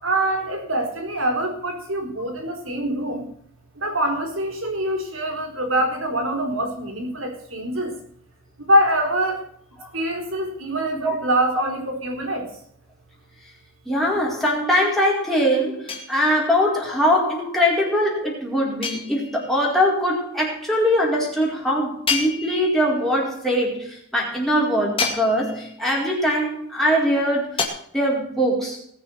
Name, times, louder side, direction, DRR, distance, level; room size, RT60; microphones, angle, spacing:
voice 1, 0.0-3.2 3.8-7.9 8.6-9.4 9.9-12.5, right 1 dB, 70° right, 4 dB, 3.9 m, -24 dB
voice 2, 13.9-27.6 27.9-28.8, equal, ahead, -4 dB, 4.6 m, -22 dB
sound 1, 15.9-16.6 18.8-19.6 22.1-23.0 25.0-25.8 27.6-27.7, left 5 dB, 25° left, 2.2 m, -28 dB
19.5 x 6.8 x 6.2 m, 0.66 s
head